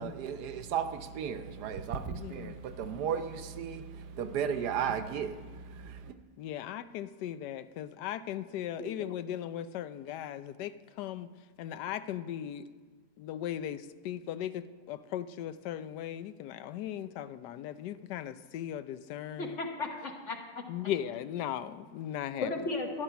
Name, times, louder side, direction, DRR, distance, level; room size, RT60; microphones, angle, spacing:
voice 1, 0.0-6.2, right 7 dB, 80° right, 1.3 m, -35 dB
voice 2, 2.1-2.6 6.4-11.3 11.6-12.7 13.2-19.6 20.7-22.5, left 11 dB, 90° left, 1.2 m, -38 dB
voice 3, 19.4-20.6 22.4-23.0, left 3 dB, 50° left, 1.6 m, -35 dB
13.5 x 11.0 x 5.8 m
omnidirectional pair, 1.7 m